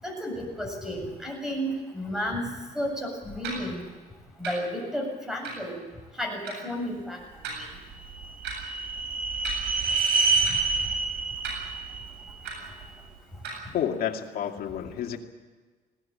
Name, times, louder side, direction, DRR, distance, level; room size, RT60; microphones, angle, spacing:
voice 1, 0.0-2.5 2.7-3.8 4.4-5.8 6.2-7.2 7.6-7.7, equal, 5° right, 1 dB, 7.8 m, -32 dB
sound 1, 3.4-3.6 4.4-4.6 5.4-5.6 6.4-6.6 7.4-7.6 8.4-8.6 9.4-9.6 10.4-10.6 11.4-11.5 12.4-12.6 13.4-13.6, right 5 dB, 85° right, 7.9 m, -35 dB
sound 2, 7.7-12.9, right 4 dB, 55° right, 2.5 m, -28 dB
voice 2, 13.7-15.2, left 9 dB, 60° left, 3 dB, 2.4 m, -30 dB
19.5 x 18.0 x 8.9 m, 1.4 s
cardioid pair, 110°, 17 cm